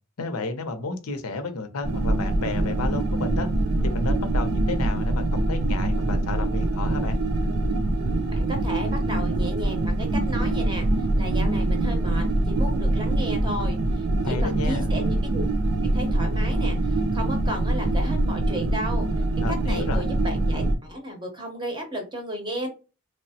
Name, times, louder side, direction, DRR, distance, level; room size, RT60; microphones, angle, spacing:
voice 1, 0.2-3.5 3.8-7.2 14.2-14.9 19.4-20.1, left 3 dB, 85° left, 7 dB, 0.6 m, -31 dB
sound 1, 1.8-20.7, right 2 dB, 75° right, 0.5 m, -24 dB
voice 2, 8.3-10.9 11.2-15.4 15.8-19.1 19.5-22.7, equal, 20° right, 3 dB, 0.7 m, -34 dB
3.1 x 2.0 x 2.7 m, 0.33 s
head